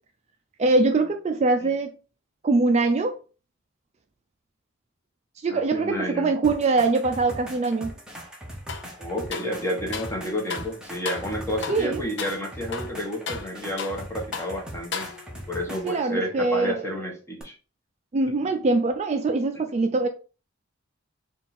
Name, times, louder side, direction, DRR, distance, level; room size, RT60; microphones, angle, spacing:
voice 1, 0.6-2.0 2.4-3.2 5.4-7.9 11.7-12.1 15.8-16.9 18.1-20.1, right 3 dB, 35° right, 0.4 m, -23 dB
voice 2, 5.5-6.3 9.0-15.1 15.5-17.5 19.5-19.6, equal, 15° left, 1.1 m, -30 dB
sound 1, 6.4-16.0 17.4-17.5, equal, 5° right, 0.8 m, -40 dB
sound 2, 8.7-8.9 9.3-10.2 10.5-10.7 11.1-11.3 11.6-11.9 12.2-12.4 12.7-14.1 14.3-14.6 14.9-15.5, left 6 dB, 60° left, 0.5 m, -35 dB
3.8 x 2.4 x 4.1 m
head